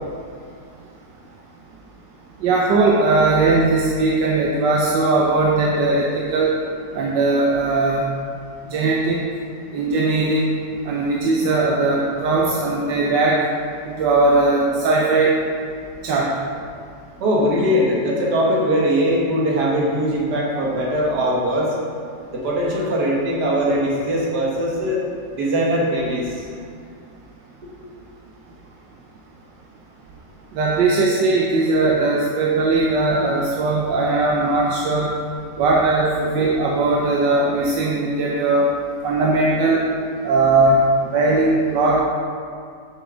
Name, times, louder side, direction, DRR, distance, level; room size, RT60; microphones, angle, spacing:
voice 1, 2.4-6.5 6.9-8.1 8.7-9.2 9.7-10.5 10.9-13.4 13.8-15.3 16.0-16.4 30.5-35.2 35.6-38.7 39.0-39.8 40.2-42.0, right 3 dB, 85° right, -3 dB, 1.4 m, -19 dB
voice 2, 17.2-21.7 22.3-25.0 25.3-26.5, equal, 65° right, -3 dB, 2.0 m, -21 dB
7.3 x 6.7 x 3.7 m, 2.2 s
omnidirectional pair, 1.9 m